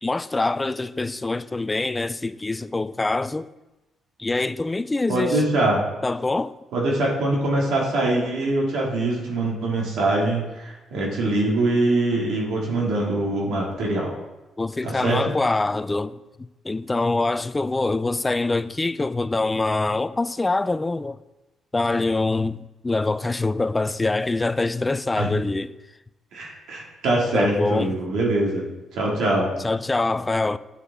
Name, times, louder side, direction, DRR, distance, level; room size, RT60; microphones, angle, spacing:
voice 1, 0.0-3.5 4.2-5.4 6.0-6.5 14.6-16.2 16.6-21.2 21.7-25.7 27.3-27.9 29.6-30.6, left 2 dB, 20° left, 0.3 m, -24 dB
voice 2, 5.1-5.8 6.7-14.1 14.8-15.3 25.2-25.3 26.3-28.7 28.9-29.5, right 2 dB, 80° right, 2.3 m, -23 dB
9.3 x 7.3 x 3.6 m
cardioid pair, 90°, 0 cm